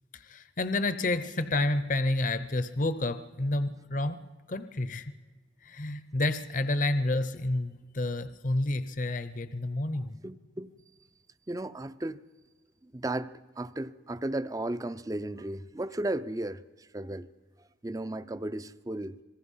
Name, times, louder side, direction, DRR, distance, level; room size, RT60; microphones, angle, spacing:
voice 1, 0.3-4.2 4.5-5.0 5.6-10.2, left 2 dB, 45° left, 0.7 m, -29 dB
voice 2, 9.9-10.7 11.5-12.2 12.8-17.3 17.6-19.1, right 1 dB, 20° right, 0.5 m, -35 dB
26.5 x 20.0 x 5.6 m
head